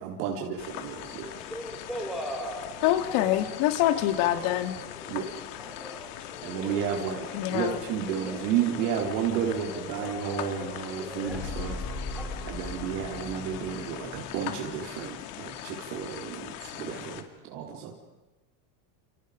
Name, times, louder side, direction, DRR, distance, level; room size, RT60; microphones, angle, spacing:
voice 1, 0.0-1.4 5.1-5.3 6.4-7.3 7.5-11.8 12.4-17.2 17.5-17.9, right 8 dB, 80° right, 0 dB, 4.2 m, -32 dB
sound 1, 0.6-17.2, left 13 dB, 80° left, 2.4 m, -41 dB
sound 2, 1.4-12.4, equal, ahead, 3.4 m, -42 dB
voice 2, 2.8-4.8 7.3-7.8, left 13 dB, 55° left, 8 dB, 2.4 m, -25 dB
sound 3, 9.0-15.6, left 3 dB, 30° left, 4.5 m, -41 dB
30.0 x 29.0 x 5.2 m, 1.1 s
cardioid pair, 175°, 46 cm